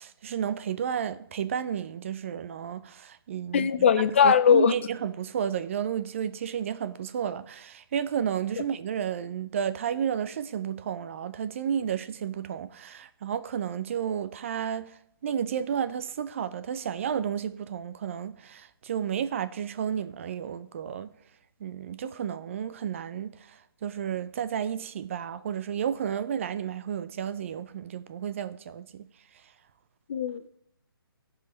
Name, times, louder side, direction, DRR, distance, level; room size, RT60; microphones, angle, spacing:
voice 1, 0.0-3.7 4.1-21.1 21.6-29.1, right 8 dB, 30° right, 0.5 m, -32 dB
voice 2, 3.5-4.7 30.1-30.5, left 7 dB, 30° left, 0.3 m, -20 dB
14.5 x 5.0 x 5.0 m
figure-of-eight pair, 150°, 13 cm